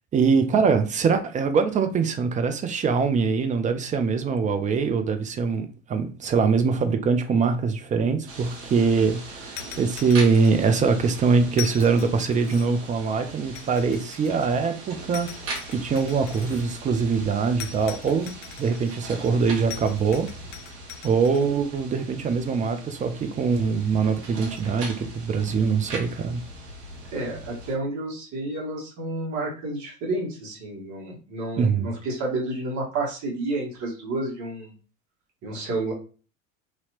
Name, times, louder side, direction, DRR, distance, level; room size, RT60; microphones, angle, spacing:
voice 1, 0.1-20.3 21.0-26.4 31.6-31.9, right 5 dB, 20° right, 0.4 m, -23 dB
sound 1, 8.3-27.7, right 2 dB, 60° right, 1.1 m, -40 dB
sound 2, 9.6-10.9 11.5-12.9 13.5-14.7 15.1-16.7 17.6-18.9 19.7-21.5, left 10 dB, 45° left, 0.5 m, -41 dB
voice 2, 27.1-34.7 35.4-35.9, right 2 dB, 45° right, 1.5 m, -30 dB
2.8 x 2.8 x 2.7 m
figure-of-eight pair, 75°, 41 cm